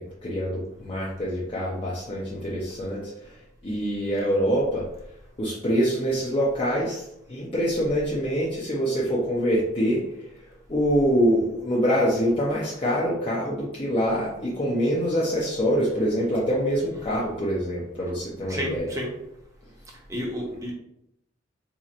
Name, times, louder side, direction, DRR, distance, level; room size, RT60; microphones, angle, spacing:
voice 1, 0.0-3.3 3.6-4.9 5.4-10.0 10.7-18.9, equal, 30° left, -6 dB, 0.6 m, -25 dB
voice 2, 18.5-19.1 20.1-20.7, equal, 15° right, -2 dB, 0.8 m, -31 dB
4.1 x 2.8 x 2.5 m, 0.81 s
head